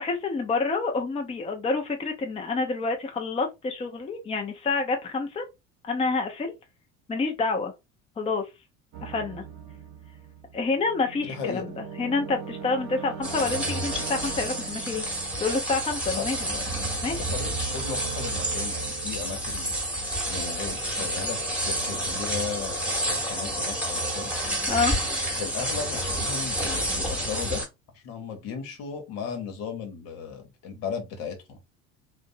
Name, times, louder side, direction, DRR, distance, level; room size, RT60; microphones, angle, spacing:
voice 1, 0.0-5.4 5.8-6.5 7.1-7.7 8.2-8.4 9.0-9.4 10.5-15.0 15.4-17.2 24.7-24.9, left 4 dB, 15° left, 0.5 m, -28 dB
sound 1, 8.9-20.6 21.0-22.1, right 8 dB, 45° right, 0.8 m, -41 dB
voice 2, 11.3-11.6 16.1-16.7 17.1-19.7 20.3-24.3 25.4-27.6 27.9-31.6, left 6 dB, 65° left, 0.9 m, -36 dB
sound 2, 13.2-27.7, right 1 dB, 5° right, 1.1 m, -29 dB
2.5 x 2.0 x 2.5 m
hypercardioid pair, 70°, 39 cm